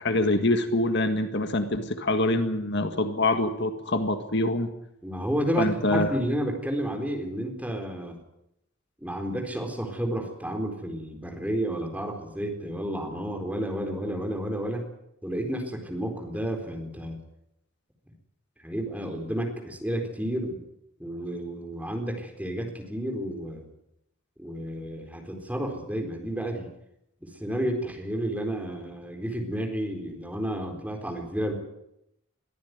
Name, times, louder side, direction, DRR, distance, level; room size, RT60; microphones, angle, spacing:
voice 1, 0.0-4.7 5.6-6.1, left 2 dB, 55° left, 7 dB, 1.8 m, -25 dB
voice 2, 5.0-8.2 9.0-14.9 15.2-17.2 18.6-20.6 21.0-23.6 24.4-26.7 27.2-31.5, right 1 dB, 5° right, 3 dB, 4.1 m, -31 dB
22.5 x 14.5 x 9.5 m, 0.81 s
head